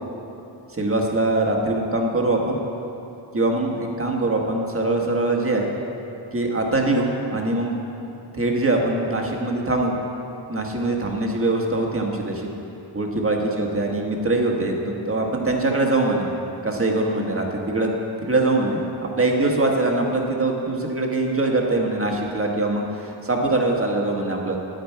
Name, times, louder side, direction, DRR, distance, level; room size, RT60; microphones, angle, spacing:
voice 1, 0.7-2.6 3.3-5.7 6.3-7.7 8.3-9.9 10.5-12.5 12.9-16.3 16.6-17.9 18.3-24.6, right 2 dB, 30° right, 0 dB, 1.4 m, -23 dB
9.7 x 9.1 x 4.6 m, 2.9 s
cardioid pair, 60°, 47 cm